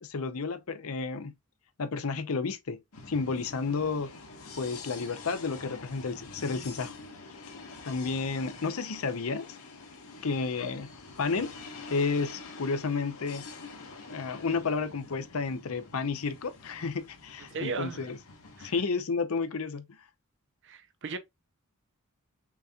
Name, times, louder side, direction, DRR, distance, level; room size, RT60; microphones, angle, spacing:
voice 1, 0.0-1.3 1.8-2.8 3.1-4.1 4.6-6.9 7.8-9.6 10.2-10.9 11.2-11.6 11.9-13.4 14.1-18.2 18.6-20.0, left 4 dB, 75° left, 0.7 m, -31 dB
sound 1, 2.9-18.8, left 3 dB, 90° left, 1.4 m, -47 dB
voice 2, 17.5-18.1 18.6-18.7 20.6-21.2, right 4 dB, 60° right, 0.7 m, -36 dB
5.9 x 2.8 x 2.3 m
head